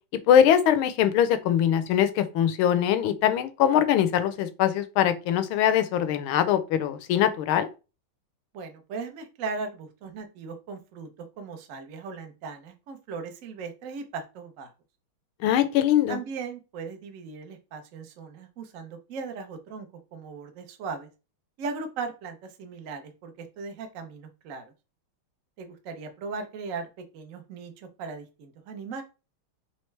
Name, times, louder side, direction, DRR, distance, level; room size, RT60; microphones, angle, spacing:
voice 1, 0.3-7.7 15.4-16.2, left 10 dB, 80° left, 1.3 m, -22 dB
voice 2, 8.5-11.1 11.4-14.7 16.1-19.9 20.1-21.1 21.6-24.6 25.6-26.9 27.1-29.0, right 4 dB, 65° right, 0.8 m, -38 dB
4.3 x 3.4 x 3.2 m
omnidirectional pair, 2.3 m